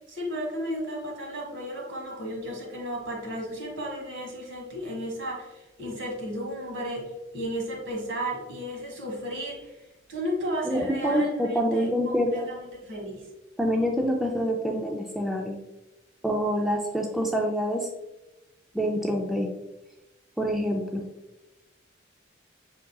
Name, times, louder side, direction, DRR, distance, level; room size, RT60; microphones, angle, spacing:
voice 1, 0.1-9.8 10.1-13.3, equal, 75° right, -1 dB, 1.5 m, -34 dB
voice 2, 10.6-12.5 13.6-15.6 16.2-17.9 18.7-19.5 20.4-21.0, equal, ahead, 1 dB, 0.3 m, -26 dB
5.8 x 3.7 x 2.3 m, 1.0 s
head